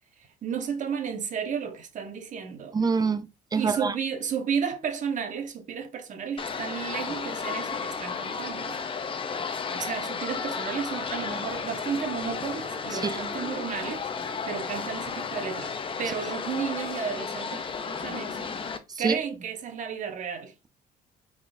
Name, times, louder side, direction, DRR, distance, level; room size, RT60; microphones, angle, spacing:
voice 1, 0.4-2.8 3.5-8.8 9.7-15.7 16.0-18.5 19.0-20.5, right 7 dB, 50° right, 1.1 m, -33 dB
voice 2, 2.7-4.0 12.9-13.2 18.9-19.1, right 5 dB, 25° right, 0.5 m, -26 dB
sound 1, 6.4-18.8, left 5 dB, 30° left, 0.6 m, -33 dB
4.6 x 3.8 x 2.6 m
cardioid pair, 110°, 17 cm